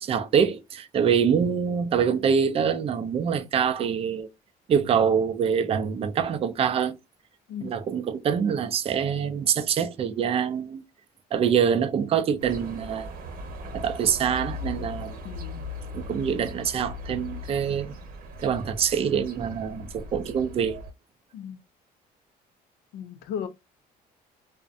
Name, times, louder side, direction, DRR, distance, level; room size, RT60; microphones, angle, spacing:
voice 1, 0.0-4.3 4.7-7.0 7.6-10.8 11.3-13.1 13.7-15.2 15.9-18.0 18.4-20.8, right 7 dB, 35° right, 0.4 m, -25 dB
voice 2, 7.5-7.9 15.2-15.6 21.3-21.6 22.9-23.5, left 8 dB, 75° left, 0.4 m, -36 dB
sound 1, 12.4-20.9, left 2 dB, 60° right, 1.0 m, -39 dB
2.5 x 2.1 x 2.5 m
cardioid pair, 110°, 17 cm